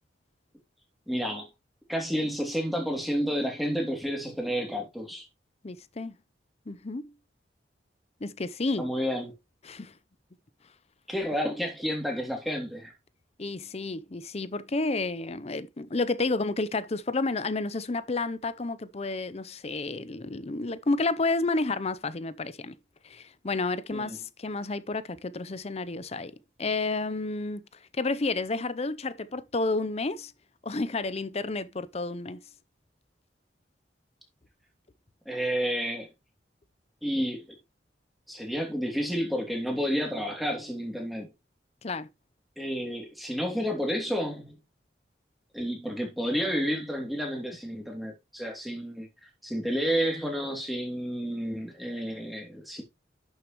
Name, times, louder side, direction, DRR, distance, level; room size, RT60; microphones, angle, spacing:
voice 1, 1.1-1.5 1.9-5.3 8.8-9.3 11.1-12.9 23.9-24.2 35.3-36.1 37.0-37.4 38.3-41.3 42.6-44.6 45.5-49.1 49.4-52.8, equal, ahead, 2.8 m, -30 dB
voice 2, 5.6-6.1 6.7-7.0 8.2-8.9 9.6-9.9 13.4-22.8 23.0-27.7 28.0-30.3 30.6-32.4 41.8-42.1, left 3 dB, 35° left, 0.7 m, -31 dB
11.0 x 6.7 x 3.1 m
head